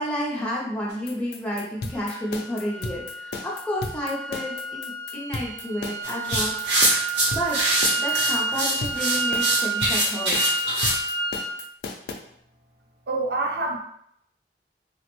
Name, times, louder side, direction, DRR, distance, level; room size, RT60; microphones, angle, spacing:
voice 1, 0.0-6.8 7.3-10.4, equal, 5° left, -6 dB, 0.5 m, -31 dB
sound 1, 0.9-12.1, left 3 dB, 65° left, 0.4 m, -35 dB
sound 2, 1.9-11.5, right 3 dB, 15° right, 0.8 m, -30 dB
sound 3, 6.0-11.0, right 1 dB, 85° right, 1.1 m, -23 dB
voice 2, 13.1-13.8, right 2 dB, 65° right, 1 dB, 0.5 m, -26 dB
3.3 x 2.1 x 2.9 m, 0.70 s
head